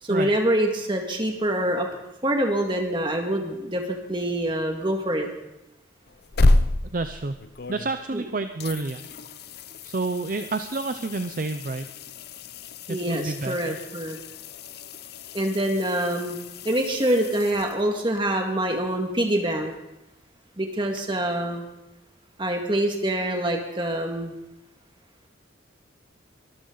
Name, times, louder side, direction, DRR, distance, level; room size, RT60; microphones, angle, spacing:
voice 1, 0.0-1.9 2.2-5.3 8.1-8.2 12.9-14.2 15.3-16.4 16.6-19.7 20.6-21.6 22.4-24.4, right 1 dB, 25° right, 2 dB, 1.9 m, -25 dB
sound 1, 6.1-8.2 8.6-18.2 21.0-21.1, left 2 dB, 50° left, 0.6 m, -30 dB
voice 2, 6.9-7.4 7.7-9.1 9.8-11.9 12.9-13.8, right 3 dB, 45° right, 8 dB, 0.5 m, -29 dB
23.5 x 13.0 x 3.9 m, 0.94 s
head